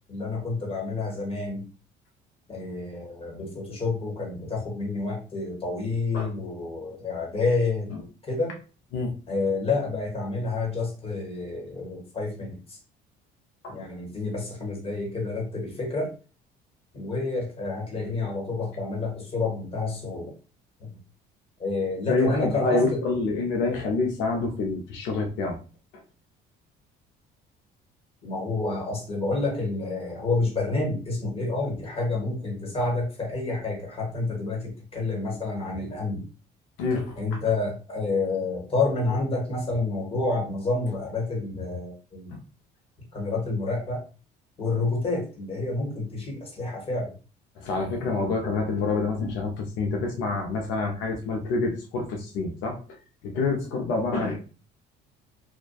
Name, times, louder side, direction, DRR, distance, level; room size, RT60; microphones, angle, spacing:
voice 1, 0.1-1.6 2.5-8.6 9.3-12.8 13.7-16.1 16.9-20.3 20.8-20.9 21.6-23.0 28.2-36.2 37.2-42.4 43.1-44.0 44.6-47.1, left 3 dB, 30° left, 0 dB, 1.2 m, -29 dB
voice 2, 22.1-25.6 36.8-37.2 42.3-42.4 47.6-52.8 53.2-54.4, left 3 dB, 80° left, 1 dB, 0.6 m, -27 dB
2.6 x 2.2 x 2.3 m, 0.35 s
cardioid pair, 95°, 20 cm